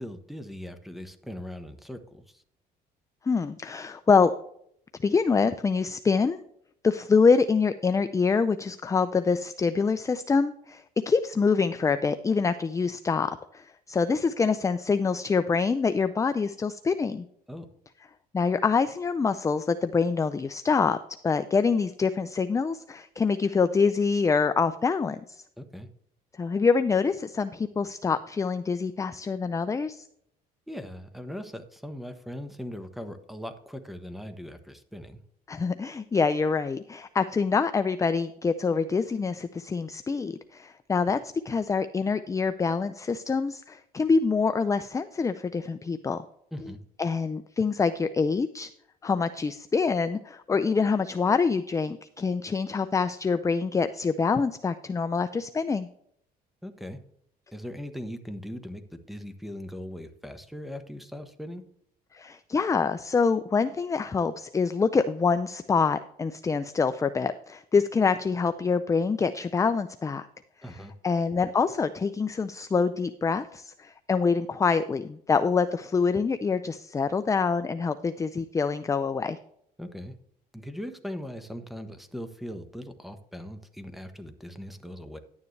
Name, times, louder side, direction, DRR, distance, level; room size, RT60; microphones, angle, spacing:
voice 1, 0.0-2.4 17.5-17.7 25.6-25.9 30.7-35.2 46.5-46.8 56.6-57.0 57.5-61.6 70.6-70.9 79.8-80.1 80.5-85.2, equal, ahead, 8 dB, 1.1 m, -39 dB
voice 2, 3.2-4.3 5.0-6.4 6.8-17.3 18.3-21.0 21.2-25.4 26.3-30.1 35.5-41.2 41.4-46.3 47.0-48.7 49.0-55.9 62.1-70.3 71.0-79.4, left 5 dB, 20° left, 11 dB, 0.5 m, -25 dB
11.0 x 9.5 x 3.3 m, 0.69 s
cardioid pair, 110°, 17 cm